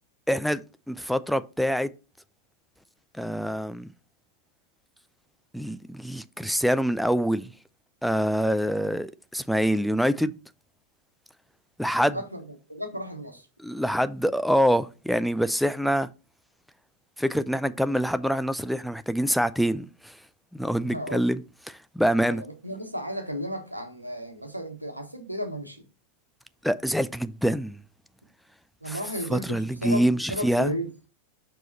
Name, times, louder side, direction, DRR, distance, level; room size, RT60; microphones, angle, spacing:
voice 1, 0.3-0.6 0.9-1.9 3.2-3.9 5.5-7.5 8.0-10.3 11.8-12.2 13.6-16.1 17.2-20.1 20.5-21.4 21.7-22.4 26.6-27.8 28.9-29.0 29.3-30.7, equal, ahead, 0.4 m, -25 dB
voice 2, 12.0-13.5 20.8-21.3 22.3-25.8 28.8-30.9, equal, 90° right, 1.2 m, -34 dB
6.1 x 4.5 x 4.1 m
figure-of-eight pair, 90°, 0 cm